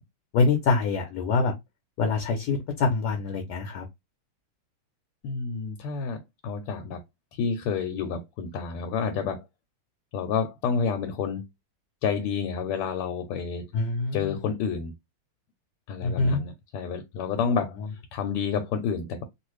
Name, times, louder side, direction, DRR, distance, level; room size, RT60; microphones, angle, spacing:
voice 1, 0.3-1.5 2.0-3.8 13.7-14.3 16.0-16.4, left 4 dB, 70° left, 1.0 m, -25 dB
voice 2, 5.2-7.0 7.3-9.5 10.1-11.5 12.0-13.7 14.1-14.9 15.9-19.2, left 6 dB, 90° left, 1.5 m, -29 dB
3.4 x 2.4 x 3.1 m
omnidirectional pair, 2.4 m